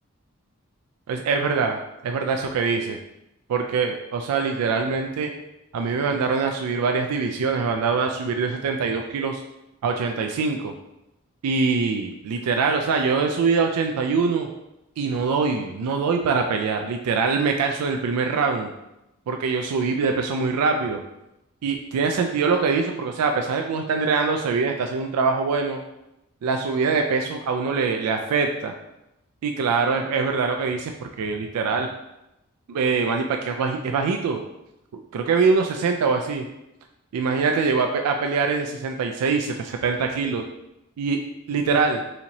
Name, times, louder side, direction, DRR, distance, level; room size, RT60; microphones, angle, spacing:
voice 1, 1.1-1.8 2.0-3.0 3.5-5.3 5.7-9.4 9.8-10.7 11.4-14.5 15.0-18.7 19.3-21.0 21.6-25.8 26.4-28.7 29.4-31.9 32.7-34.4 34.9-36.5 37.1-40.4 41.0-41.2 41.5-42.0, right 4 dB, 90° right, 3 dB, 0.3 m, -23 dB
4.2 x 2.7 x 2.9 m, 0.90 s
head